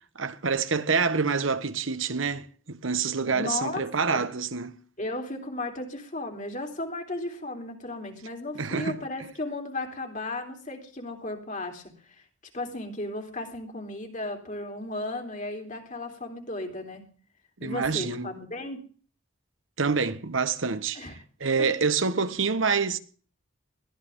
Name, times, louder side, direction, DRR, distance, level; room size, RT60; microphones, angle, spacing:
voice 1, 0.1-4.8 8.5-9.0 17.6-18.3 19.8-23.0, right 5 dB, 80° right, 1.2 m, -27 dB
voice 2, 3.3-3.8 4.1-4.2 5.0-12.1 12.5-17.1 17.6-18.8 20.9-21.1, left 2 dB, 40° left, 3.3 m, -35 dB
21.5 x 15.5 x 3.7 m
head